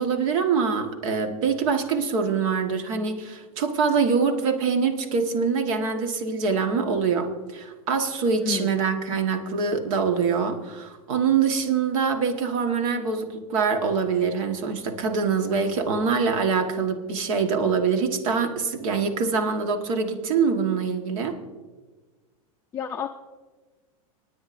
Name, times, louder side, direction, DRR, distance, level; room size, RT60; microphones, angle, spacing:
voice 1, 0.0-21.3, right 5 dB, 70° right, 6 dB, 1.5 m, -24 dB
voice 2, 8.4-8.8 22.7-23.1, left 7 dB, 15° left, 4 dB, 0.4 m, -29 dB
28.0 x 9.4 x 2.6 m, 1.3 s
supercardioid pair, 145°, 18 cm